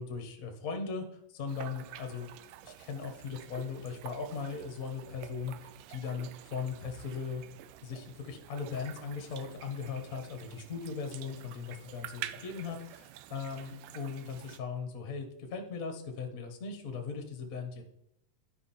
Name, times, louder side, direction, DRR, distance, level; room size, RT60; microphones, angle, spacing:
voice 1, 0.0-2.3 2.6-7.4 7.8-17.9, left 5 dB, 65° left, 4 dB, 0.8 m, -38 dB
sound 1, 1.5-14.6, right 12 dB, 80° right, 2.1 m, -48 dB
11.5 x 5.4 x 4.3 m, 0.77 s
omnidirectional pair, 4.0 m